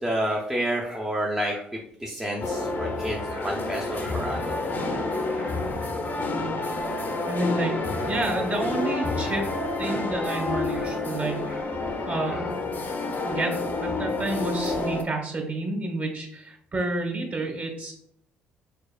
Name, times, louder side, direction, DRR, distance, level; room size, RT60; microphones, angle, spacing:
voice 1, 0.0-4.6 5.3-5.6 9.8-10.0 10.7-10.9 11.5-11.7 12.3-12.5, right 1 dB, 10° right, -3 dB, 0.9 m, -30 dB
sound 1, 2.4-15.0, left 2 dB, 40° left, 0.9 m, -29 dB
voice 2, 7.3-7.7 8.0-9.5 9.8-11.5 12.0-12.4 13.2-13.5 13.8-17.9, right 2 dB, 35° right, 2 dB, 1.7 m, -29 dB
4.6 x 4.2 x 2.4 m, 0.65 s
hypercardioid pair, 50°, 5 cm